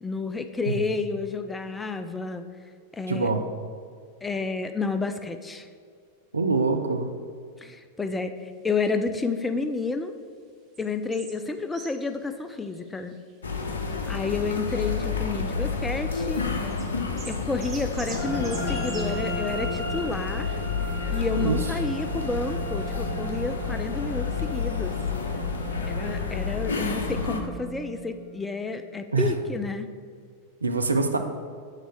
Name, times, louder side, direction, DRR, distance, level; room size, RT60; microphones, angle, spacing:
voice 1, 0.0-2.4 2.9-3.3 4.2-5.7 7.6-10.1 10.8-13.2 14.1-16.4 17.3-20.6 20.9-24.9 25.8-29.9, left 4 dB, 10° left, 8 dB, 0.4 m, -30 dB
voice 2, 3.1-3.5 6.3-7.1 21.3-21.7 29.1-29.3 30.6-31.2, right 3 dB, 75° right, 6 dB, 0.6 m, -24 dB
sound 1, 10.7-10.9 11.1-11.4 11.7-12.1 12.5-13.3 13.7-13.8 14.8-15.5 16.7-16.9 17.2-19.1, right 4 dB, 25° right, 1.2 m, -43 dB
sound 2, 13.4-27.4, left 5 dB, 70° left, 0.7 m, -30 dB
sound 3, 18.1-28.7, right 1 dB, 50° left, 1.2 m, -37 dB
6.6 x 4.5 x 6.1 m, 2.1 s
figure-of-eight pair, 90°, 0 cm